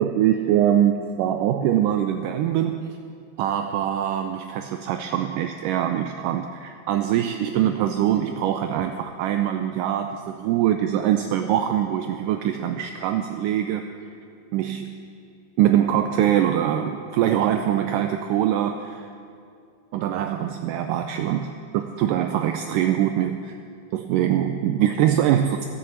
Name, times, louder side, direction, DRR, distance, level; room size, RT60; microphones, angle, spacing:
voice 1, 0.0-2.9 3.4-13.9 14.5-15.0 15.6-19.1 19.9-23.6 23.9-25.7, right 10 dB, 85° right, 7 dB, 1.9 m, -23 dB
13.0 x 11.0 x 7.2 m, 2.4 s
omnidirectional pair, 4.4 m